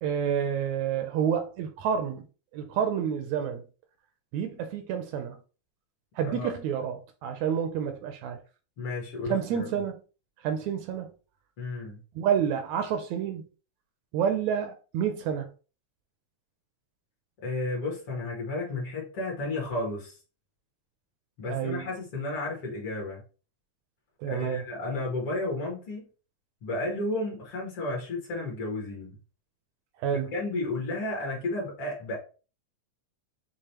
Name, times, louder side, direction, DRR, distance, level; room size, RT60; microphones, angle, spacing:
voice 1, 0.0-2.2 2.5-3.6 4.3-5.4 6.2-8.4 9.3-10.0 10.4-11.1 12.2-13.4 14.1-15.5 21.5-21.9 24.2-24.6 30.0-30.3, right 8 dB, 80° right, 1.8 m, -29 dB
voice 2, 8.8-9.7 11.6-12.0 17.4-20.1 21.4-23.2 24.2-26.1 26.6-29.2 30.3-32.2, left 2 dB, 55° left, 2.2 m, -32 dB
6.6 x 2.6 x 2.9 m
omnidirectional pair, 3.4 m